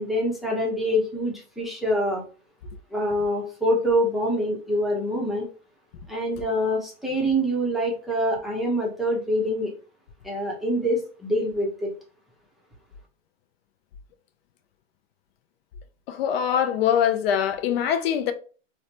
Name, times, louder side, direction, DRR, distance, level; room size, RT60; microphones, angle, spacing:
voice 1, 0.0-2.2 2.9-5.5 6.1-9.7 10.2-11.9, equal, ahead, 0.6 m, -25 dB
voice 2, 16.1-18.3, left 9 dB, 50° left, 0.5 m, -23 dB
3.1 x 2.1 x 2.8 m
hypercardioid pair, 120°, 38 cm